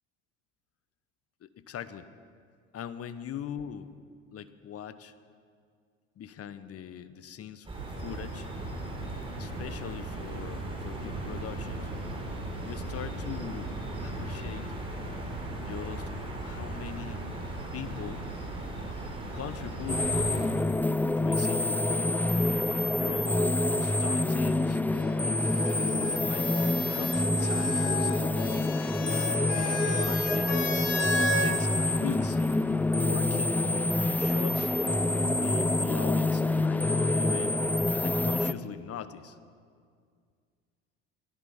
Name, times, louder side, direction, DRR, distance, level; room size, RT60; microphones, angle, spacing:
voice 1, 1.4-2.1 2.7-3.9 4.3-5.1 6.2-7.7 8.0-8.5 9.4-11.9 12.6-13.7 14.0-14.7 15.6-16.1 16.4-17.3 17.7-18.2 19.3-20.7 21.2-22.2 23.0-24.8 25.6-26.5 26.9-28.1 28.9-30.6 31.2-32.4 33.0-34.7 35.3-37.6 38.0-39.4, left 9 dB, 40° left, 13 dB, 1.0 m, -41 dB
sound 1, 7.6-20.5, right 2 dB, 15° right, 4.3 m, -37 dB
sound 2, 19.9-38.5, left 2 dB, 5° left, 0.4 m, -27 dB
sound 3, 24.9-31.5 32.6-33.3, left 2 dB, 60° left, 2.4 m, -35 dB
16.5 x 13.5 x 5.7 m, 2.1 s
hypercardioid pair, 75°, 35 cm